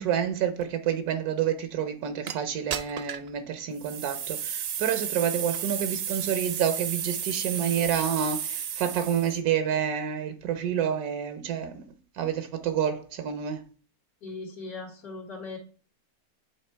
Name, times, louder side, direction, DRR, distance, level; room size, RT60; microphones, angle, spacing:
voice 1, 0.0-11.9 12.2-13.6, right 9 dB, 85° right, 1.3 m, -28 dB
sound 1, 2.3-2.4 2.7-3.3 3.8-9.4, right 9 dB, 60° right, 0.6 m, -33 dB
voice 2, 14.2-15.6, left 3 dB, 90° left, 1.9 m, -39 dB
8.6 x 3.6 x 4.4 m
omnidirectional pair, 1.6 m